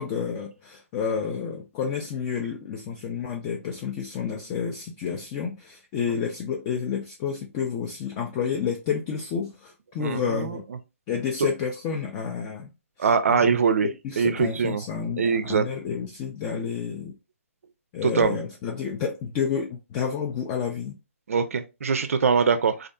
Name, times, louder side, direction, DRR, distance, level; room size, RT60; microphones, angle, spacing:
voice 1, 0.0-10.6 11.1-12.7 13.0-13.4 13.8-17.1 17.9-21.0, left 6 dB, 25° left, 0.4 m, -30 dB
voice 2, 10.0-10.6 11.4-11.5 13.0-13.9 14.2-14.8 15.2-15.7 18.0-18.4 21.3-22.9, right 5 dB, 70° right, 0.4 m, -23 dB
2.5 x 2.3 x 2.2 m
hypercardioid pair, 145°, 8 cm